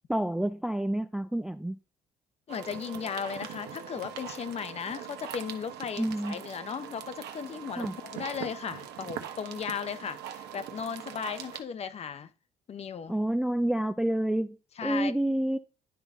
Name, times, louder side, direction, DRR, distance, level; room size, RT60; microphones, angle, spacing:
voice 1, 0.1-1.8 6.0-6.4 7.8-7.9 13.1-14.6 14.8-15.6, right 1 dB, 5° right, 0.3 m, -28 dB
voice 2, 2.5-12.3 12.7-13.1 14.8-15.1, left 7 dB, 40° left, 0.6 m, -36 dB
sound 1, 2.5-11.6, right 9 dB, 75° right, 1.1 m, -42 dB
11.0 x 4.0 x 3.6 m
cardioid pair, 110°, 17 cm